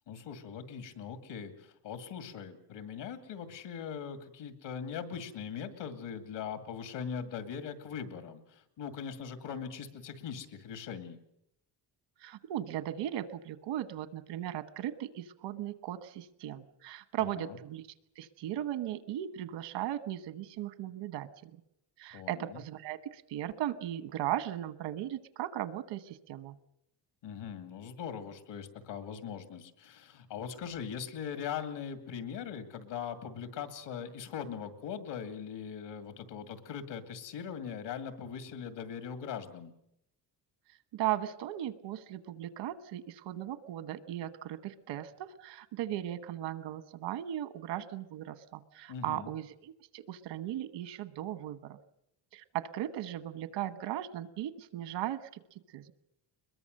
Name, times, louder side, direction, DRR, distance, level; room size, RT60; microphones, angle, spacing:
voice 1, 0.1-11.2 17.2-17.6 22.1-22.6 27.2-39.7 48.9-49.3, left 7 dB, 80° left, 8 dB, 2.5 m, -41 dB
voice 2, 12.2-17.8 18.2-21.5 22.0-26.6 40.9-51.8 52.3-55.4 55.7-55.9, right 12 dB, 85° right, 13 dB, 1.3 m, -37 dB
22.0 x 22.0 x 6.6 m, 0.78 s
cardioid pair, 125°, 42 cm